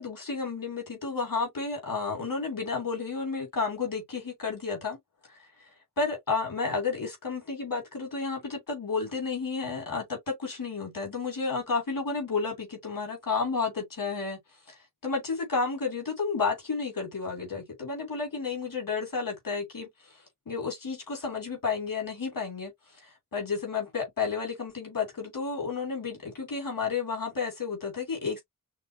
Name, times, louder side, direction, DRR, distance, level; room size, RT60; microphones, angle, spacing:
voice 1, 0.0-5.0 6.0-14.4 14.7-14.8 15.0-20.1 20.5-22.7 23.3-28.4, left 4 dB, 85° left, 2.9 m, -31 dB
5.9 x 2.7 x 2.8 m
wide cardioid pair, 90°, 33 cm